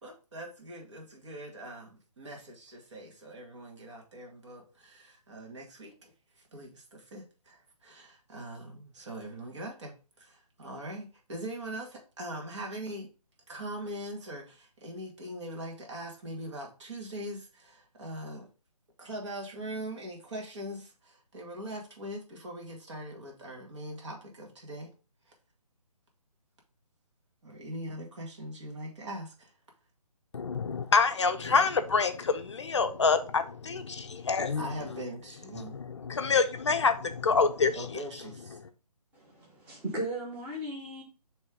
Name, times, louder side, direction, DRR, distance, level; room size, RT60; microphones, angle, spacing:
voice 1, 0.0-13.1 13.5-18.5 19.0-24.9 25.3-25.4 27.4-29.5 34.6-35.8 37.8-38.6, right 1 dB, 45° right, 0 dB, 2.2 m, -42 dB
voice 2, 30.3-34.6 35.7-37.8, left 5 dB, 45° left, 8 dB, 0.6 m, -26 dB
voice 3, 39.1-41.0, right 1 dB, 10° right, -4 dB, 1.2 m, -37 dB
6.2 x 3.3 x 4.9 m, 0.33 s
figure-of-eight pair, 160°, 20 cm